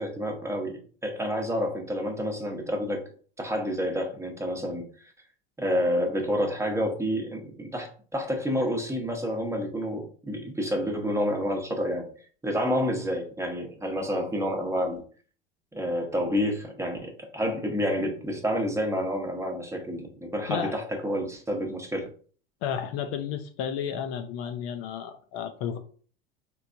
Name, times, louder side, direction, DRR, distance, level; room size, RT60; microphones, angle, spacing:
voice 1, 0.0-3.0 3.4-5.1 5.6-12.1 12.4-15.0 15.7-22.1, equal, 10° right, 2 dB, 0.8 m, -29 dB
voice 2, 22.6-25.8, left 8 dB, 50° left, 7 dB, 0.5 m, -32 dB
3.3 x 3.0 x 2.5 m, 0.43 s
hypercardioid pair, 85°, 29 cm